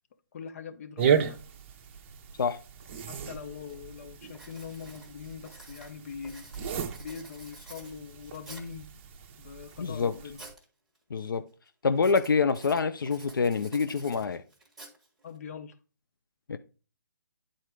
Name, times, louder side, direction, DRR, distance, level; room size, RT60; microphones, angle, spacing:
voice 1, 0.3-1.4 3.1-6.5 7.0-8.9 9.4-10.4 15.2-15.7, left 6 dB, 45° left, 1.2 m, -42 dB
nylon string pull, 1.0-10.5, right 7 dB, 40° right, 1.0 m, -34 dB
Writing, 3.7-3.9 4.3-8.8 9.4-10.6 10.9-11.4 11.9-15.4, right 2 dB, ahead, 1.8 m, -51 dB
voice 2, 9.8-10.1 11.1-11.4 11.8-14.4 16.5-16.6, left 5 dB, 80° left, 0.7 m, -26 dB
10.0 x 4.3 x 4.8 m
hypercardioid pair, 155°, 11 cm